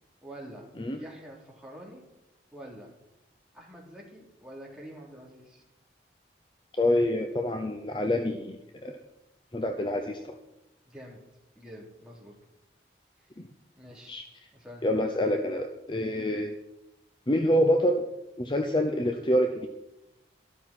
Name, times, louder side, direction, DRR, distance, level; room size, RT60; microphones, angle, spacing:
voice 1, 0.2-2.0 2.5-2.9 3.5-5.6 10.9-11.2 11.5-12.3 13.2-13.3 13.8-14.9, equal, 5° right, -3 dB, 3.2 m, -46 dB
voice 2, 6.8-8.6 8.8-9.0 9.5-10.4 13.4-13.5 14.1-14.2 14.8-16.5 17.3-18.1 18.4-19.7, left 1 dB, 25° left, 5 dB, 0.7 m, -26 dB
12.5 x 12.5 x 4.3 m, 0.93 s
head